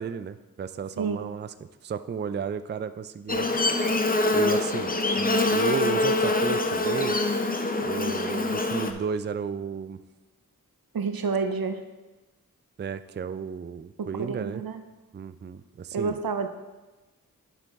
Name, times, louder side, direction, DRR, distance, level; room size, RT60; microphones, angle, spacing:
voice 1, 0.0-1.5 1.8-3.6 4.3-7.2 7.8-10.0 12.8-14.6 15.1-16.2, right 6 dB, 30° right, 12 dB, 0.4 m, -33 dB
voice 2, 1.0-1.3 10.9-11.8 14.0-14.8 15.9-16.5, right 5 dB, 85° right, 8 dB, 0.6 m, -29 dB
Buzz, 3.3-8.9, left 2 dB, 25° left, 0.6 m, -24 dB
9.1 x 5.7 x 3.6 m, 1.2 s
cardioid pair, 45°, 35 cm